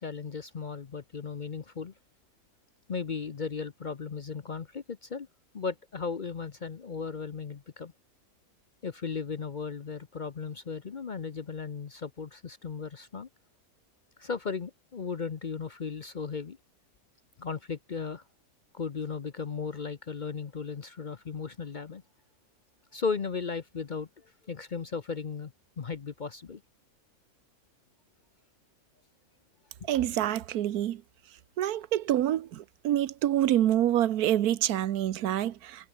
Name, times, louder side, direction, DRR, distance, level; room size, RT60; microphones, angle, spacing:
voice 1, 0.0-1.9 2.9-5.3 5.5-7.9 8.8-13.3 14.2-16.6 17.4-18.2 18.7-22.0 22.9-25.5 25.8-26.6, left 5 dB, 40° left, 0.7 m, -36 dB
voice 2, 29.9-31.0 31.6-35.9, right 12 dB, 85° right, 1.3 m, -27 dB
omnidirectional pair, 1.6 m